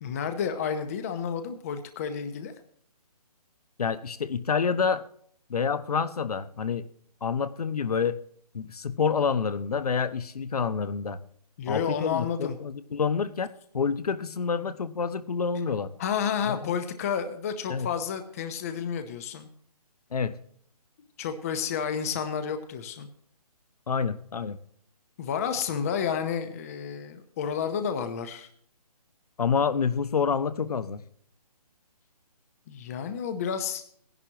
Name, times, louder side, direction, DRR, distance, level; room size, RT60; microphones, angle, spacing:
voice 1, 0.0-2.5 11.6-12.6 16.0-19.5 21.2-23.1 25.2-28.5 32.7-33.8, left 7 dB, 25° left, 9 dB, 0.8 m, -30 dB
voice 2, 3.8-5.0 5.5-6.9 7.2-8.2 8.5-11.2 11.7-15.9 16.5-16.7 17.7-17.9 20.1-20.4 23.9-24.6 29.4-31.0, left 6 dB, 70° left, 13 dB, 1.0 m, -28 dB
16.5 x 11.0 x 2.9 m, 0.63 s
hypercardioid pair, 160°, 20 cm